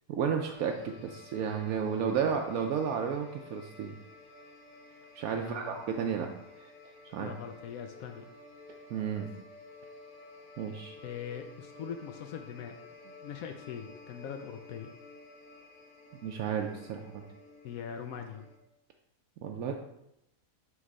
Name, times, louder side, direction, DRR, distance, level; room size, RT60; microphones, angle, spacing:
voice 1, 0.1-4.0 5.1-6.3 6.6-6.7 7.0-7.3 8.9-9.3 10.6-11.0 16.2-17.2 19.4-19.7, right 7 dB, 80° right, 3 dB, 1.0 m, -32 dB
sound 1, 0.5-18.6, left 3 dB, 45° left, 1.3 m, -53 dB
voice 2, 5.4-5.8 7.2-8.3 11.0-12.7 13.0-14.9 17.6-18.5, left 8 dB, 80° left, 6 dB, 1.0 m, -41 dB
5.9 x 3.1 x 5.3 m, 0.84 s
omnidirectional pair, 1.5 m